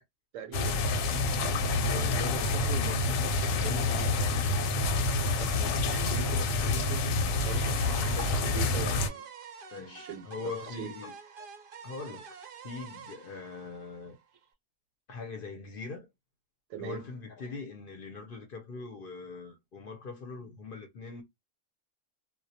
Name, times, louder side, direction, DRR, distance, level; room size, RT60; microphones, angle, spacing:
voice 1, 0.3-0.8 5.4-7.8 8.2-9.2 9.8-10.9 16.7-17.0, right 9 dB, 90° right, 1.0 m, -42 dB
sound 1, 0.5-9.1, left 2 dB, 85° left, 1.0 m, -28 dB
voice 2, 1.9-3.3 3.6-4.7 8.7-8.9 9.7-11.1 11.8-12.2 12.6-14.2 15.1-16.1 16.8-21.2, left 4 dB, 55° left, 0.7 m, -41 dB
sound 2, 7.5-14.4, right 7 dB, 60° right, 0.6 m, -48 dB
2.2 x 2.1 x 2.7 m
omnidirectional pair, 1.3 m